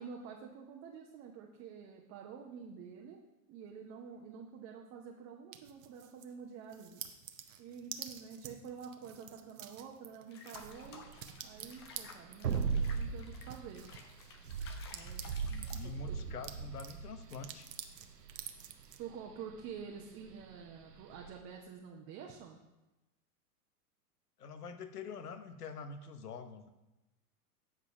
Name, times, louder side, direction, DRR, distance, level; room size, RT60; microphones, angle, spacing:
voice 1, 0.0-3.2 3.5-7.0 7.6-11.1 11.4-12.7 13.0-13.8 14.9-15.6 16.1-16.2 19.0-22.6, right 6 dB, 30° right, 0 dB, 0.8 m, -48 dB
sound 1, 5.5-6.3 6.7-15.9 16.2-19.0, right 10 dB, 55° right, 0.9 m, -49 dB
Water / Bathtub (filling or washing), 10.3-16.2, left 5 dB, 20° left, 0.3 m, -55 dB
sound 2, 10.6-21.4, right 5 dB, 85° right, 0.8 m, -39 dB
voice 2, 15.5-17.7 24.4-26.7, left 5 dB, 75° left, 9 dB, 0.9 m, -46 dB
7.8 x 4.9 x 5.6 m, 1.0 s
figure-of-eight pair, 100°, 47 cm